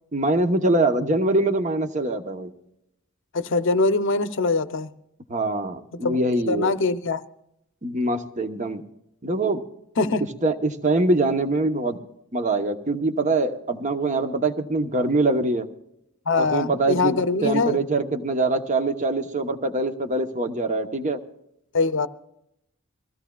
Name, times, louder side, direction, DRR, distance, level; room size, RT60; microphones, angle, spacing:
voice 1, 0.1-2.5 5.3-6.7 7.8-8.8 9.2-9.6 10.4-12.0 12.3-15.7 16.4-21.2, right 2 dB, 35° right, 7 dB, 0.9 m, -23 dB
voice 2, 3.3-4.9 5.9-7.2 10.0-10.2 16.3-17.8 21.7-22.1, left 3 dB, 55° left, 12 dB, 0.7 m, -23 dB
23.5 x 16.0 x 2.3 m, 0.81 s
head